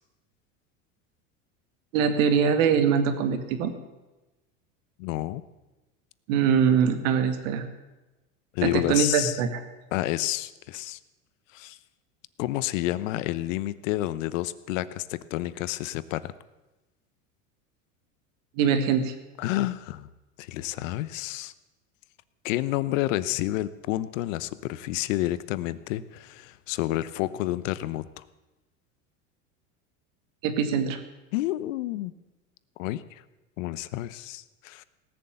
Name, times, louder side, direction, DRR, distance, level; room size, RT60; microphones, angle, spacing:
voice 1, 1.9-3.7 6.3-7.6 8.6-9.6 18.6-19.1 30.4-31.0, right 7 dB, 70° right, 9 dB, 2.1 m, -23 dB
voice 2, 5.0-5.4 8.5-9.4 9.9-11.0 11.5-11.8 12.4-16.3 19.4-20.1 20.4-21.5 22.4-28.2 31.3-32.1 32.8-33.2 33.6-34.8, left 15 dB, 70° left, 16 dB, 0.9 m, -29 dB
18.5 x 7.1 x 8.9 m, 1.1 s
hypercardioid pair, 90°, 40 cm